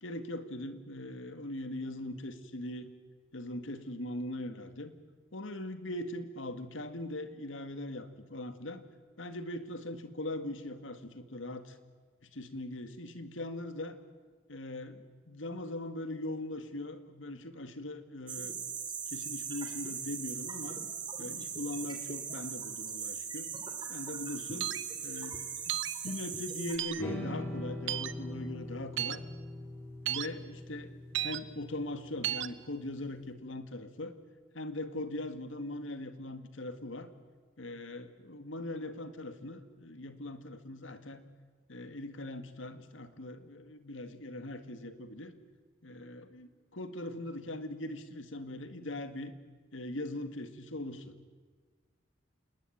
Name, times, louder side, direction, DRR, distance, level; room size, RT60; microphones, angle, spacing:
voice 1, 0.0-2.9 3.3-4.9 5.3-8.8 9.2-11.8 12.2-14.0 14.5-18.6 19.1-20.8 21.2-23.5 23.9-24.7 25.0-29.2 30.0-30.9 31.2-34.1 34.5-37.1 37.6-41.2 41.7-45.3 45.8-49.3 49.7-51.1, left 1 dB, 75° left, 9 dB, 2.0 m, -40 dB
sound 1, 18.3-26.8, right 6 dB, 25° right, 2.8 m, -39 dB
sound 2, 24.6-24.8 25.7-25.9 26.8-27.0 27.9-28.1 29.0-29.2 30.1-30.3 31.1-31.4 32.2-32.5, right 13 dB, 70° right, 0.9 m, -33 dB
sound 3, 27.0-33.2, left 1 dB, 10° left, 4.6 m, -42 dB
27.5 x 20.0 x 8.8 m, 1.5 s
head